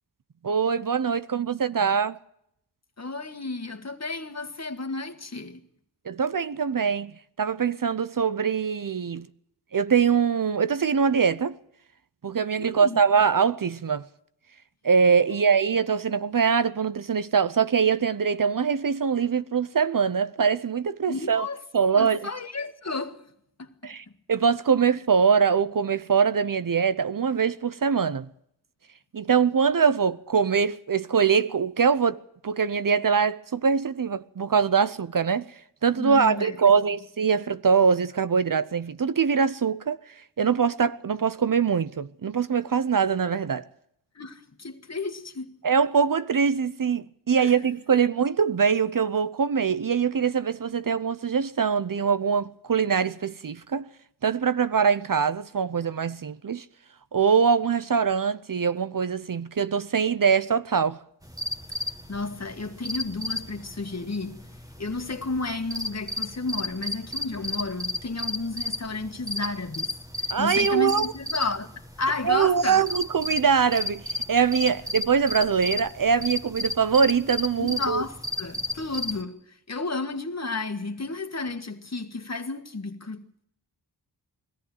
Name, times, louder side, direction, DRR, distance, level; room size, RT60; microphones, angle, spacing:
voice 1, 0.4-2.2 6.1-7.1 7.4-9.3 9.7-11.6 12.2-14.1 14.8-21.5 21.7-22.3 23.8-28.3 29.1-35.5 35.8-40.0 40.4-43.7 45.6-53.9 54.2-56.6 57.1-61.0 70.3-71.1 72.2-78.0, right 6 dB, 50° right, 0.8 m, -23 dB
voice 2, 3.0-5.7 12.6-13.0 15.3-15.4 21.1-21.6 21.9-23.2 23.6-23.9 36.0-36.8 44.2-45.6 47.4-47.5 62.1-64.5 64.8-69.9 70.2-71.7 72.0-72.9 77.6-79.4 79.7-83.5, left 3 dB, 40° left, 1.9 m, -32 dB
sound 1, 61.2-79.2, left 2 dB, 10° right, 1.8 m, -34 dB
21.5 x 14.5 x 9.4 m
wide cardioid pair, 70°, 42 cm